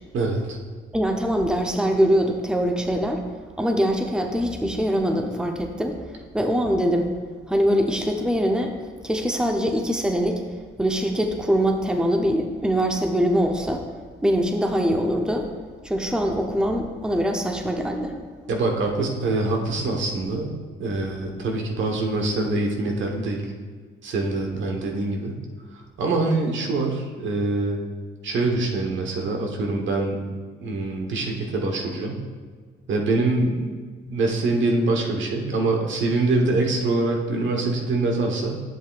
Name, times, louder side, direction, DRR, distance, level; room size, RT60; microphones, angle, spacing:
voice 1, 0.1-0.6 18.5-20.5 20.8-23.4 24.0-25.4 26.0-27.8 28.2-30.2 30.6-32.2 32.9-33.8 34.1-38.6, right 2 dB, 70° right, 1 dB, 1.3 m, -24 dB
voice 2, 0.9-3.2 3.6-6.0 6.3-7.1 7.5-8.7 9.0-10.4 10.8-13.8 14.2-15.5 15.8-18.1, equal, 5° right, 3 dB, 0.8 m, -23 dB
11.0 x 7.8 x 2.5 m, 1.5 s
cardioid pair, 90°, 20 cm